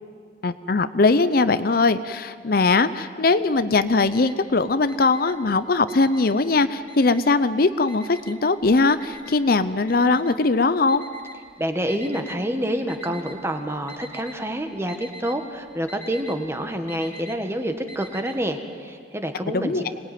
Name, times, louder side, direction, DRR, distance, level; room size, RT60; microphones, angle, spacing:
voice 1, 0.4-11.0 19.5-19.8, left 3 dB, 55° left, 12 dB, 0.6 m, -20 dB
Alarm, 3.5-4.5 4.8-6.5 6.9-7.5 7.9-12.4 12.9-13.5 13.8-14.4 14.7-18.4, equal, 10° left, 3.0 m, -44 dB
voice 2, 11.6-19.8, equal, 15° right, 6 dB, 1.6 m, -27 dB
26.0 x 19.0 x 9.3 m, 2.1 s
head